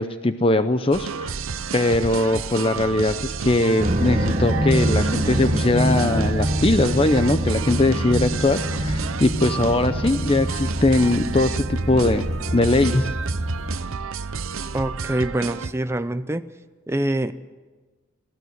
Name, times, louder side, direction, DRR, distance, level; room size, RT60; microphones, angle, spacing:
voice 1, 0.0-1.3 1.7-12.3 12.5-13.1, left 2 dB, 25° left, 10 dB, 0.6 m, -21 dB
sound 1, 0.9-15.7, right 5 dB, 90° right, 0.8 m, -31 dB
sound 2, 3.6-11.4, left 1 dB, 50° left, 4.5 m, -30 dB
sound 3, 3.8-13.8, right 1 dB, 35° right, 1.3 m, -27 dB
voice 2, 14.7-16.5 16.9-17.3, right 1 dB, 15° right, 11 dB, 0.5 m, -25 dB
19.0 x 15.0 x 9.6 m, 1.3 s
head